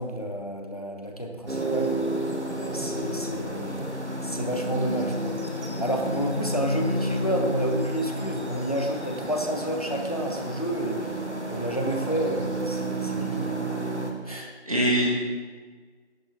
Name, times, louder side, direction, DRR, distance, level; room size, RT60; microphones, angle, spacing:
voice 1, 0.0-2.0 2.5-3.9 4.2-5.4 5.8-11.1 11.5-13.6 14.3-14.5, equal, 35° left, 3 dB, 0.9 m, -30 dB
sound 1, 1.5-14.1, right 1 dB, 75° right, 1.7 m, -31 dB
voice 2, 14.3-15.1, right 1 dB, 30° right, -5 dB, 2.3 m, -25 dB
10.5 x 8.3 x 4.1 m, 1.5 s
figure-of-eight pair, 170°, 35 cm